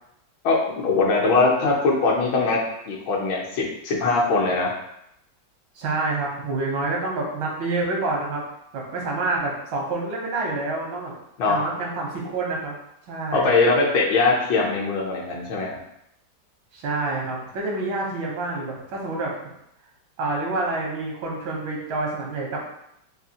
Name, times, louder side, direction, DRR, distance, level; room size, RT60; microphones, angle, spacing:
voice 1, 0.4-2.6 2.9-4.7 11.4-11.6 13.3-15.8, left 3 dB, 75° left, -2 dB, 1.4 m, -21 dB
voice 2, 5.8-8.4 8.7-11.1 11.5-12.8 13.1-13.5 16.7-19.3 20.2-22.6, right 3 dB, 85° right, -2 dB, 1.7 m, -27 dB
4.1 x 2.6 x 2.8 m, 0.78 s
omnidirectional pair, 2.1 m